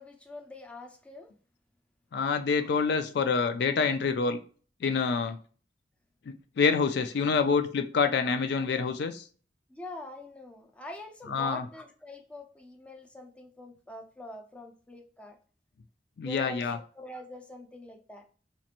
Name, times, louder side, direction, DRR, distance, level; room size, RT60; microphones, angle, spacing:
voice 1, 0.0-1.3 2.6-2.8 9.7-15.4 16.2-18.2, left 1 dB, 5° left, 3 dB, 0.5 m, -44 dB
voice 2, 2.1-4.4 4.8-5.4 6.6-9.2 11.2-11.7 16.2-16.8, left 5 dB, 65° left, 8 dB, 0.4 m, -27 dB
4.1 x 3.0 x 2.5 m, 0.40 s
head